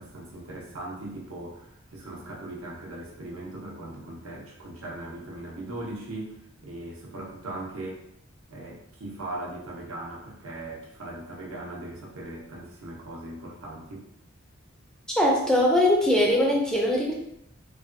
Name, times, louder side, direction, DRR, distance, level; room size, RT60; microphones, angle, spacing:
voice 1, 0.0-6.4 6.6-8.0 8.5-14.1, right 1 dB, 90° right, -3 dB, 0.8 m, -39 dB
voice 2, 15.2-17.1, left 1 dB, 5° left, -2 dB, 0.3 m, -21 dB
3.2 x 2.2 x 2.5 m, 0.76 s
head